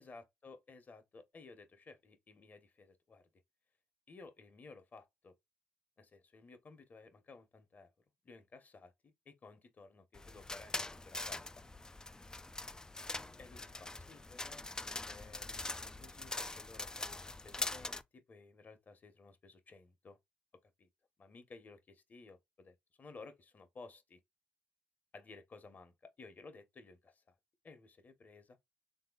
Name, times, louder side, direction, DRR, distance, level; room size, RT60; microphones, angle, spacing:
voice 1, 0.0-3.3 4.1-5.4 6.0-7.9 8.2-10.7 11.0-11.6 13.1-14.7 15.1-20.2 20.6-20.9 21.2-24.2 25.1-27.3 27.6-28.6, left 3 dB, 40° left, 0.9 m, -56 dB
sound 1, 10.1-18.0, left 2 dB, 15° left, 0.3 m, -43 dB
3.5 x 2.7 x 2.3 m
supercardioid pair, 65°, 4 cm